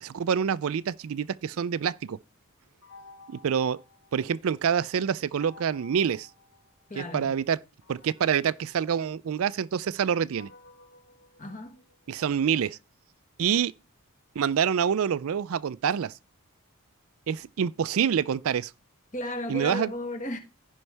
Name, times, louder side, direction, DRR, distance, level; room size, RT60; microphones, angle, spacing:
voice 1, 0.0-2.2 3.3-3.8 4.1-6.3 7.0-7.6 7.9-10.5 12.1-12.8 13.4-13.7 14.4-16.1 17.3-18.7 19.5-19.9, right 7 dB, 70° right, 0.4 m, -26 dB
sound 1, 2.8-4.6 5.3-7.1 7.8-12.1, left 3 dB, 60° left, 4.7 m, -54 dB
voice 2, 6.9-7.4 11.4-11.8 19.1-20.4, left 1 dB, 35° left, 1.6 m, -34 dB
15.5 x 5.4 x 3.4 m
head